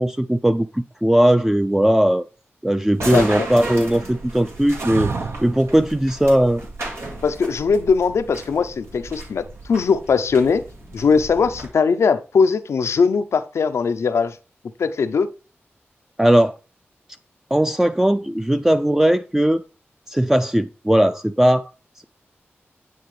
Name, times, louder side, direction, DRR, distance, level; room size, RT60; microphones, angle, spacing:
voice 1, 0.0-2.2 2.6-5.1 5.4-6.6 16.2-16.6 17.5-19.6 20.1-21.7, right 1 dB, 10° right, 0.4 m, -18 dB
sound 1, 2.9-11.7, right 2 dB, 90° right, 1.9 m, -34 dB
voice 2, 3.0-3.5 7.2-10.6 10.9-14.4 14.8-15.3, left 5 dB, 85° left, 0.5 m, -20 dB
sound 2, 4.8-5.7 8.3-8.9, right 5 dB, 65° right, 0.7 m, -28 dB
9.4 x 3.9 x 3.2 m
cardioid pair, 40°, 5 cm